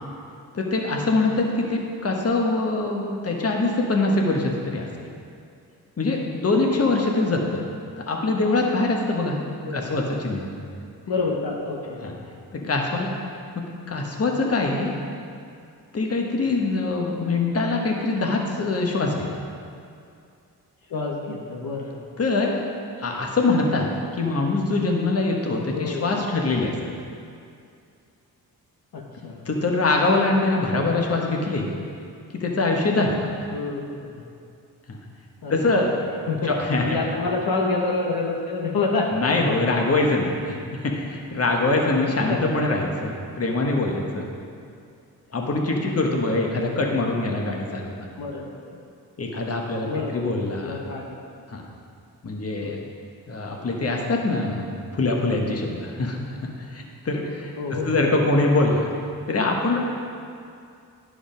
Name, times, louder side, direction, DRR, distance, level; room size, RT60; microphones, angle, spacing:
voice 1, 0.5-4.9 6.0-7.6 8.1-9.4 9.7-10.5 12.0-12.1 12.5-13.1 13.5-14.9 15.9-19.3 22.2-22.5 23.0-23.9 24.2-26.8 29.4-31.7 32.4-33.3 34.9-35.0 35.5-35.9 36.4-37.0 39.1-44.3 45.3-48.1 49.2-49.9 50.1-50.8 51.5-51.6 52.2-52.8 53.3-54.7 54.9-58.9 59.3-59.8, left 2 dB, 40° left, 0 dB, 1.4 m, -23 dB
voice 2, 9.6-10.0 11.1-12.0 20.9-22.0 25.7-26.3 28.9-29.4 33.5-34.1 35.4-35.6 36.3-39.6 42.3-42.4 48.2-48.8 49.8-50.3 50.6-51.2 52.6-52.7 57.6-58.1, left 3 dB, 65° left, -1 dB, 1.1 m, -28 dB
10.0 x 5.0 x 5.1 m, 2.4 s
cardioid pair, 70°, 38 cm